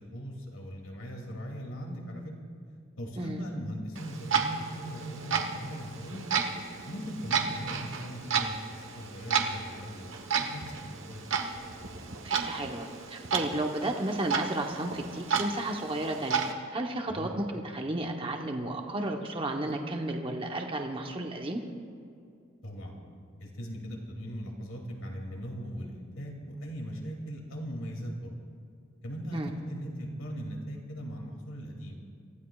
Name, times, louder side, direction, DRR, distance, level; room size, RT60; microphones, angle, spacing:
voice 1, 0.0-2.3 3.0-6.3 6.8-11.2 17.2-17.3 22.6-23.0 23.4-28.3 29.0-32.0, equal, 90° left, 0 dB, 2.8 m, -39 dB
Clock, 4.0-16.5, right 6 dB, 70° right, 1.2 m, -33 dB
voice 2, 12.2-16.4 16.7-21.6 29.3-29.5, right 1 dB, 25° right, 2 dB, 1.0 m, -33 dB
28.0 x 15.5 x 2.4 m, 2.4 s
head